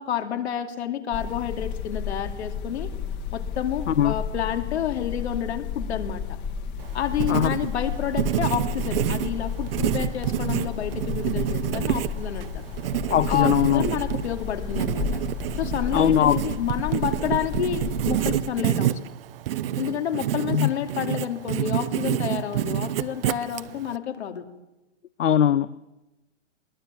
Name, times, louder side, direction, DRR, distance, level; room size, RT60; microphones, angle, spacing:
voice 1, 0.0-2.9 3.3-6.2 6.9-12.6 13.3-15.1 15.6-19.1 19.8-24.4, left 10 dB, 60° left, 7 dB, 2.7 m, -29 dB
sound 1, 1.1-18.4, left 6 dB, 30° left, 2.1 m, -32 dB
Writing, 6.8-24.0, right 12 dB, 50° right, 0.9 m, -28 dB
voice 2, 13.1-13.8 15.9-16.4 20.5-20.7 25.2-25.7, left 10 dB, 80° left, 17 dB, 0.8 m, -20 dB
22.0 x 18.5 x 8.8 m, 1.0 s
hypercardioid pair, 130°, 37 cm